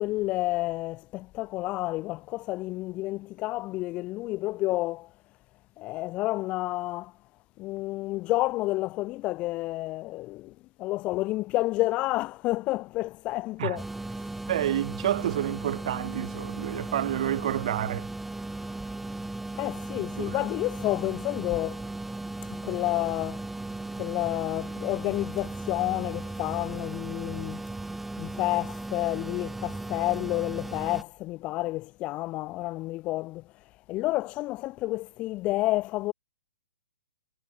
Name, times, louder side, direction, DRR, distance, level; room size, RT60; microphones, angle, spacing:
voice 1, 0.0-5.1 5.8-7.1 7.6-10.5 10.8-13.8 19.6-21.8 22.5-23.4 24.0-27.6 28.2-33.4 33.9-36.1, left 18 dB, 25° left, 1.1 m, -30 dB
sound 1, 13.8-31.0, right 2 dB, 5° right, 2.9 m, -37 dB
voice 2, 14.5-18.1 20.2-20.4, right 12 dB, 55° right, 5.5 m, -29 dB
hypercardioid pair, 135°, 4 cm